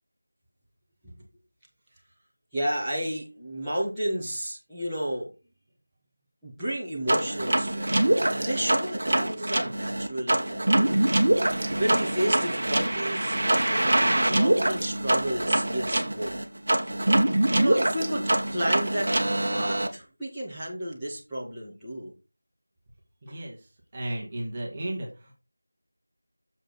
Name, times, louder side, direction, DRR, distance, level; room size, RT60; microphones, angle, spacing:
voice 1, 2.5-5.3 6.4-8.0 8.3-11.1 11.8-13.4 13.7-16.3 17.4-19.1 19.5-22.1 23.3-23.4, right 1 dB, ahead, -19 dB, 2.0 m, -32 dB
sound 1, 7.1-19.9, right 1 dB, 50° right, 1.5 m, -24 dB
voice 2, 23.2-23.6 23.9-25.3, right 1 dB, 20° right, -2 dB, 2.1 m, -34 dB
7.3 x 7.3 x 4.4 m, 0.29 s
figure-of-eight pair, 175°, 0 cm